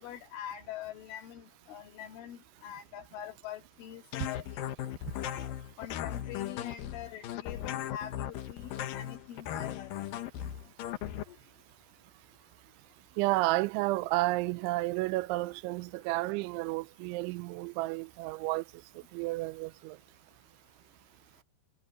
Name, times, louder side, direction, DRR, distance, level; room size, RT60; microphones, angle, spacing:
voice 1, 0.0-4.6 5.2-9.9 11.3-11.4, left 10 dB, 85° left, 4.6 m, -44 dB
sound 1, 4.1-11.2, left 11 dB, 70° left, 2.2 m, -37 dB
voice 2, 13.2-18.6 19.1-20.0, right 20 dB, 90° right, 3.0 m, -31 dB
omnidirectional pair, 5.4 m